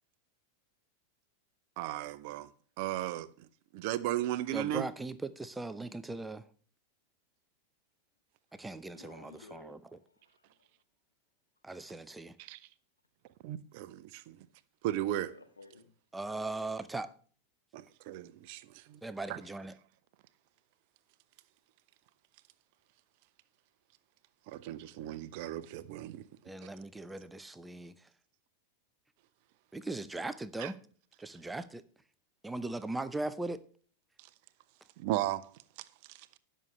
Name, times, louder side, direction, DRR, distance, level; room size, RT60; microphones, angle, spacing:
voice 1, 1.8-2.5 2.8-3.5 3.7-4.9 12.4-12.6 13.4-14.5 14.8-15.3 17.7-19.0 19.3-19.4 24.5-26.2 30.6-30.7 35.0-35.5 36.1-36.3, right 13 dB, 45° right, 0.8 m, -36 dB
voice 2, 4.5-6.5 8.5-10.0 11.6-12.4 16.1-17.1 19.0-19.7 26.4-28.1 29.7-30.8 31.2-31.8 32.4-33.6, right 2 dB, 10° right, 0.7 m, -39 dB
voice 3, 8.9-10.7 15.2-15.9, left 3 dB, 75° left, 1.9 m, -55 dB
19.5 x 6.6 x 3.2 m
figure-of-eight pair, 90°, 0 cm